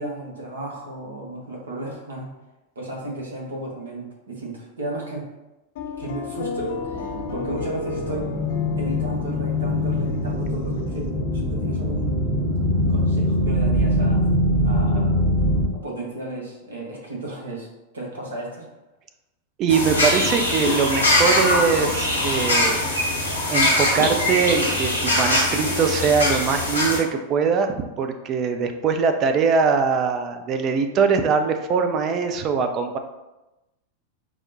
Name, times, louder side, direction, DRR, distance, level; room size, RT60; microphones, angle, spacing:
voice 1, 0.0-2.3 2.7-5.3 6.0-8.4 8.7-12.2 12.9-14.2 14.6-15.1 15.7-17.7 17.9-18.7, right 2 dB, 70° right, -1 dB, 0.9 m, -34 dB
sound 1, 5.8-11.1, left 5 dB, 55° left, 0.4 m, -33 dB
sound 2, 6.8-15.7, left 1 dB, 5° right, 0.7 m, -23 dB
voice 2, 19.6-22.8 23.5-33.0, right 5 dB, 35° right, 6 dB, 0.4 m, -22 dB
sound 3, 19.7-27.0, left 1 dB, 85° left, 0.9 m, -22 dB
4.7 x 2.1 x 2.6 m, 1.0 s
figure-of-eight pair, 90°, 0 cm